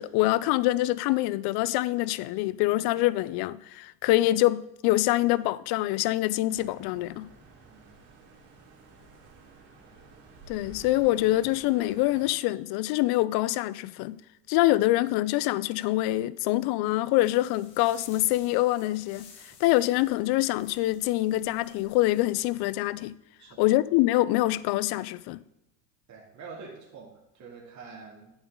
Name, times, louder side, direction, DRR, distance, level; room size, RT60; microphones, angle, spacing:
voice 1, 0.0-7.3 10.5-14.2 14.5-23.1 23.6-25.4, left 17 dB, 55° left, 0.5 m, -25 dB
sound 1, 6.5-12.3, right 3 dB, 65° right, 2.9 m, -51 dB
voice 2, 7.7-8.0 23.4-23.6 26.1-28.3, right 4 dB, 35° right, 2.7 m, -46 dB
sound 2, 17.2-22.8, left 5 dB, 70° left, 2.0 m, -55 dB
9.0 x 7.2 x 3.7 m
hypercardioid pair, 85°, 48 cm